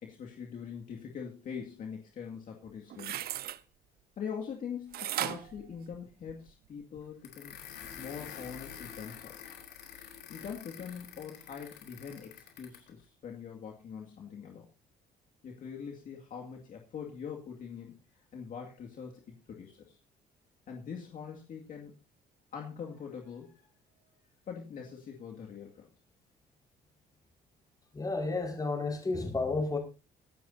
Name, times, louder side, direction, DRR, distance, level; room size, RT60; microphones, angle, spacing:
voice 1, 0.0-3.2 4.2-7.6 8.0-9.4 10.3-14.7 15.4-20.0 20.7-21.9 22.5-23.7 24.0-24.2 24.5-25.9, left 7 dB, 55° left, 2.2 m, -43 dB
sound 1, 2.6-3.6 4.9-6.5 7.0-7.1, right 13 dB, 65° right, 0.7 m, -36 dB
sound 2, 7.2-12.9, left 8 dB, 75° left, 3.8 m, -47 dB
voice 2, 27.9-29.8, left 3 dB, 20° left, 5.1 m, -31 dB
23.0 x 10.5 x 2.8 m
cardioid pair, 110°, 17 cm